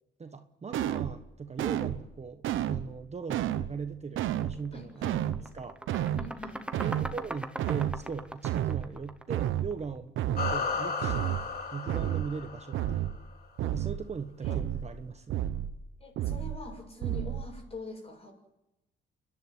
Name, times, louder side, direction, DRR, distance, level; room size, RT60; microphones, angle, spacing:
voice 1, 0.2-5.8 6.8-10.1 10.5-11.4 11.7-13.2 13.6-15.5, right 5 dB, 35° right, 1.2 m, -40 dB
sound 1, 0.7-1.2 1.6-2.0 2.4-2.9 3.3-3.7 4.2-4.6 5.0-5.4 5.9-6.3 6.7-7.2 7.6-8.0 8.4-8.9 9.3-9.7 10.2-10.6 11.0-11.4 11.9-12.3 12.7-13.2 13.6-14.0 14.4-14.9 15.3-15.8 16.2-16.6 17.0-17.5, right 11 dB, 85° right, 1.1 m, -30 dB
sound 2, 4.4-4.5 4.9-9.8, right 1 dB, 5° right, 1.2 m, -41 dB
voice 2, 4.7-5.2 6.1-6.7 14.4-14.6 16.0-18.3, left 2 dB, 30° left, 7.3 m, -44 dB
sound 3, 10.4-13.1, left 4 dB, 50° left, 3.0 m, -34 dB
28.5 x 11.5 x 9.8 m
cardioid pair, 90°, 20 cm